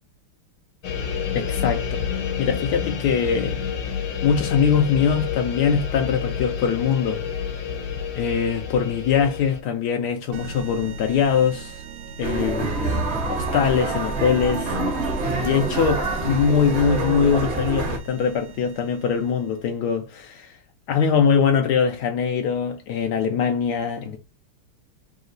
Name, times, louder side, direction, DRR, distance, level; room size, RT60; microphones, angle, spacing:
sound 1, 0.8-9.6, left 7 dB, 65° left, 1.5 m, -29 dB
voice 1, 1.3-2.0 2.4-3.6 4.2-7.2 8.2-11.8 12.2-14.8 15.4-20.5 20.9-24.2, left 7 dB, 80° left, 0.9 m, -22 dB
sound 2, 10.3-19.7, right 2 dB, 90° right, 0.9 m, -38 dB
sound 3, 12.2-18.0, right 3 dB, 55° right, 0.7 m, -26 dB
3.6 x 2.9 x 3.9 m
omnidirectional pair, 2.4 m